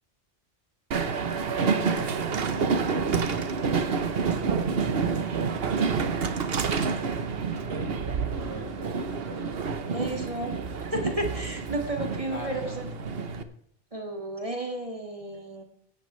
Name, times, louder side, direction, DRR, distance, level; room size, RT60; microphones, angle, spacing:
Train, 0.9-13.4, right 5 dB, 65° right, 1.2 m, -28 dB
voice 1, 1.5-2.7 7.7-8.0 8.4-10.1 12.3-12.8, left 1 dB, 80° left, 1 dB, 3.3 m, -42 dB
voice 2, 9.9-10.6 10.9-13.0 13.9-15.6, right 1 dB, 30° right, 2 dB, 2.2 m, -33 dB
16.5 x 11.5 x 3.2 m, 0.70 s
omnidirectional pair, 1.1 m